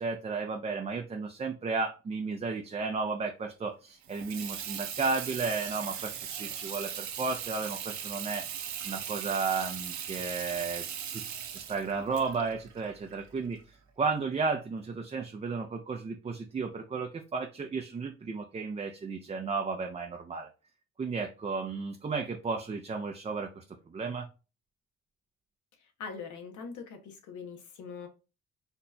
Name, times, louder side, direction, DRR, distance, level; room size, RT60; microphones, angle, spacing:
voice 1, 0.0-20.5 21.0-24.3, right 4 dB, 20° right, 3 dB, 0.4 m, -34 dB
Water tap faucet / Sink (filling or washing), 4.0-13.6, right 9 dB, 65° right, 0.7 m, -39 dB
voice 2, 26.0-28.1, left 5 dB, 75° left, 6 dB, 0.9 m, -42 dB
4.1 x 2.8 x 2.2 m, 0.32 s
cardioid pair, 90°, 30 cm